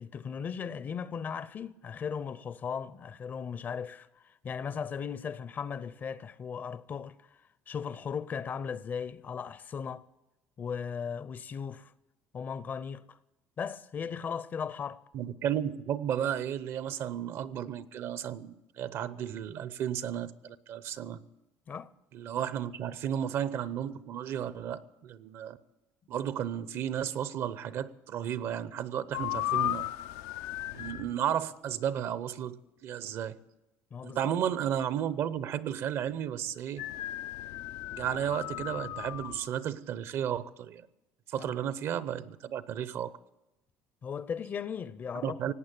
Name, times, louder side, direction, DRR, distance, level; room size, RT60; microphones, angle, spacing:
voice 1, 0.0-7.3 7.7-10.0 10.6-11.9 12.3-13.2 13.6-15.0 21.7-21.9 33.9-34.3 41.4-41.5 44.0-45.5, left 6 dB, 40° left, 0.6 m, -37 dB
voice 2, 15.1-21.2 22.1-25.6 26.1-29.9 30.7-33.4 34.0-36.9 37.9-40.9 41.3-43.1 45.2-45.5, right 9 dB, 60° right, 0.7 m, -33 dB
sound 1, 29.1-31.1 36.8-39.5, left 14 dB, 80° left, 0.5 m, -35 dB
18.0 x 8.5 x 8.4 m
supercardioid pair, 100°, 5 cm